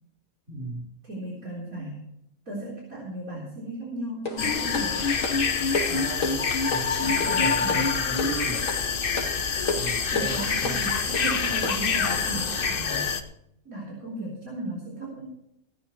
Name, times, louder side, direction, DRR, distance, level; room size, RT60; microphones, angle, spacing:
voice 1, 0.5-0.8 5.9-8.6 9.8-10.8, right 2 dB, 50° right, -3 dB, 5.5 m, -36 dB
voice 2, 1.0-2.1 2.5-5.0 7.0-7.2 7.6-7.9 9.7-13.1 13.7-15.4, right 1 dB, 65° right, -4 dB, 4.3 m, -36 dB
sound 1, 4.3-11.9, left 3 dB, 60° left, 2.4 m, -34 dB
sound 2, 4.4-13.2, left 5 dB, 40° left, 1.0 m, -26 dB
16.5 x 13.0 x 3.2 m, 0.79 s
omnidirectional pair, 1.5 m